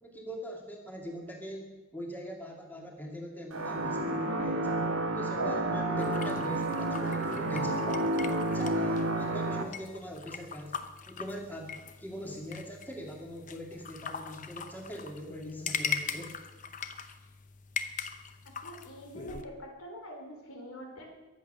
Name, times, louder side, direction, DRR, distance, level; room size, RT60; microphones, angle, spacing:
voice 1, 0.0-8.0 8.5-10.8 11.0-16.3, equal, 10° left, 0 dB, 2.1 m, -42 dB
sound 1, 3.5-9.6, right 1 dB, 80° right, 1.6 m, -30 dB
sound 2, 6.0-19.4, left 6 dB, 35° left, 0.8 m, -41 dB
voice 2, 18.6-21.1, equal, 85° left, 2 dB, 3.6 m, -45 dB
22.5 x 8.4 x 6.6 m, 1.1 s
head